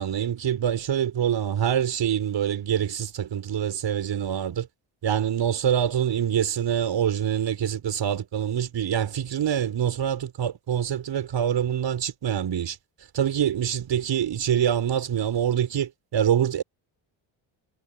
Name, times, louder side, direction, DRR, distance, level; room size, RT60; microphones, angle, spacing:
voice 1, 0.0-4.7 5.0-12.8 13.1-16.6, right 9 dB, 60° right, 5.3 m, -25 dB
cardioid pair, 110°, 48 cm